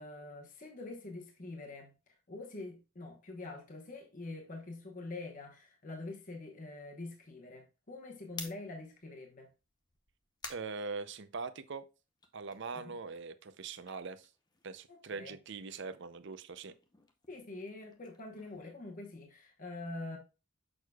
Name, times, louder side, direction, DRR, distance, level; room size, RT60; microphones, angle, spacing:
voice 1, 0.0-1.9 2.3-9.5 12.7-13.0 14.9-15.4 17.3-20.2, left 2 dB, 40° left, 1.1 m, -45 dB
sound 1, 8.3-11.7 12.1-15.0 15.3-19.5, left 4 dB, 20° left, 0.7 m, -53 dB
voice 2, 10.5-11.9 12.3-14.3 14.6-16.7, right 4 dB, 55° right, 0.6 m, -42 dB
6.4 x 6.3 x 2.3 m
head